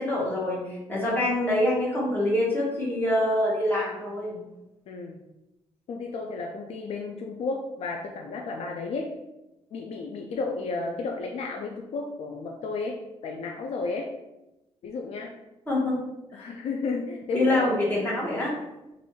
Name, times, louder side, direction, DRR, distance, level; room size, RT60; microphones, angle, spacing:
voice 1, 0.0-4.4 15.7-15.9 16.3-16.6 17.3-18.5, left 1 dB, 15° left, -6 dB, 1.3 m, -25 dB
voice 2, 4.9-5.2 5.9-9.1 9.7-14.1 14.8-15.3 16.3-17.8, left 3 dB, 65° left, 2 dB, 0.4 m, -33 dB
3.0 x 2.5 x 3.1 m, 0.96 s
cardioid pair, 100°, 11 cm